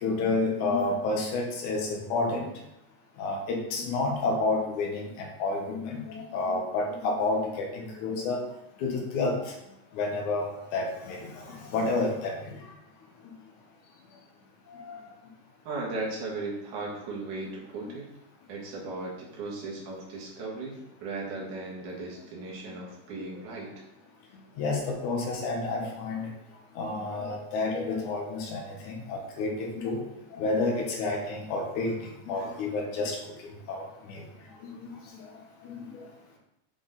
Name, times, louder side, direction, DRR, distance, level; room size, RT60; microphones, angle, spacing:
voice 1, 0.0-2.5 3.2-8.4 8.8-9.4 9.9-10.5 10.7-11.2 11.5-12.3 14.7-15.0 17.8-18.0 24.6-26.3 26.8-30.0 30.3-31.9 32.3-33.2 33.7-34.2 34.6-35.2 35.6-35.9, left 3 dB, 85° left, 1 dB, 2.6 m, -30 dB
voice 2, 15.6-18.1 18.5-23.8, right 3 dB, 80° right, -3 dB, 3.1 m, -37 dB
8.2 x 4.1 x 4.0 m, 0.85 s
omnidirectional pair, 3.4 m